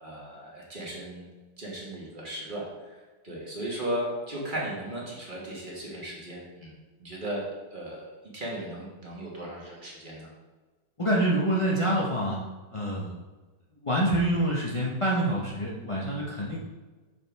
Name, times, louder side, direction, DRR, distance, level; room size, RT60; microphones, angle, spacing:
voice 1, 0.0-1.3 1.6-3.0 3.2-6.7 7.0-7.4 7.7-8.1 8.3-10.3, right 1 dB, 30° right, -4 dB, 1.3 m, -36 dB
voice 2, 11.0-12.4 12.7-13.2 13.8-16.6, right 1 dB, 45° left, -5 dB, 0.4 m, -26 dB
6.3 x 4.5 x 3.4 m, 1.3 s
omnidirectional pair, 1.8 m